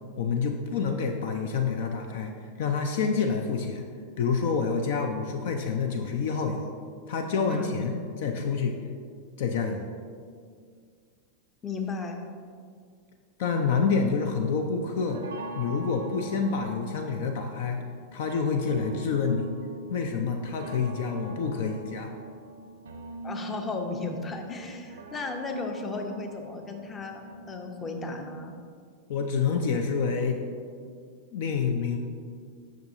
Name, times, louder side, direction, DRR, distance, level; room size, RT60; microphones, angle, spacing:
voice 1, 0.2-2.3 2.6-3.8 4.2-6.7 7.1-7.9 8.2-8.7 9.4-9.9 13.4-15.2 15.6-17.8 18.1-19.5 19.9-22.1 29.1-30.4 31.3-32.0, left 5 dB, 55° left, 5 dB, 0.4 m, -27 dB
voice 2, 7.5-7.9 11.6-12.2 23.2-27.2 27.5-28.5, left 3 dB, 20° left, 4 dB, 0.7 m, -35 dB
sound 1, 14.4-28.5, right 2 dB, 65° right, 0.5 m, -43 dB
7.8 x 6.1 x 2.6 m, 2.1 s
figure-of-eight pair, 90°, 0 cm